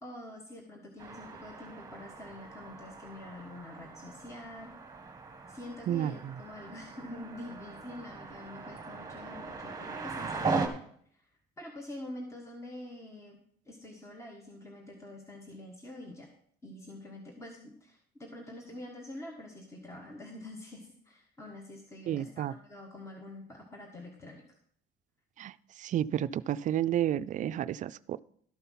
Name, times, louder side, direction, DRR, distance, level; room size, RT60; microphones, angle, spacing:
voice 1, 0.0-4.7 5.5-10.8 11.1-11.2 11.6-13.4 13.7-16.3 16.6-24.4, left 1 dB, 15° left, 2 dB, 1.5 m, -46 dB
sound 1, 1.0-10.7, right 4 dB, 20° right, 1.4 m, -39 dB
voice 2, 5.9-6.3 22.1-22.5 25.4-25.5 25.8-28.2, right 11 dB, 50° right, 15 dB, 0.4 m, -31 dB
12.5 x 5.7 x 5.6 m, 0.62 s
cardioid pair, 110°, 17 cm